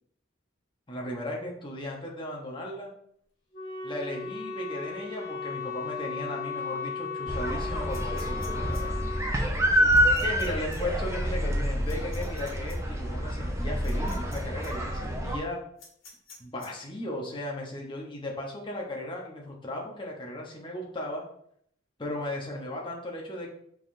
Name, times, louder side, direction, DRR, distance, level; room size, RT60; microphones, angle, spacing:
voice 1, 0.9-2.9 3.8-9.0 10.2-15.6 16.4-21.2 22.0-23.5, left 1 dB, 25° left, -1 dB, 0.9 m, -36 dB
Wind instrument woodwind instrument, 3.5-9.3, left 5 dB, 60° left, 1.3 m, -36 dB
sound 1, 7.3-15.4, equal, 15° right, 0.5 m, -27 dB
sound 2, 7.9-8.8 9.9-10.5 10.7-10.8 11.9-12.7 13.8-14.4 14.6-14.7 15.8-16.7, left 4 dB, 80° left, 1.5 m, -49 dB
5.4 x 3.6 x 2.6 m, 0.67 s
head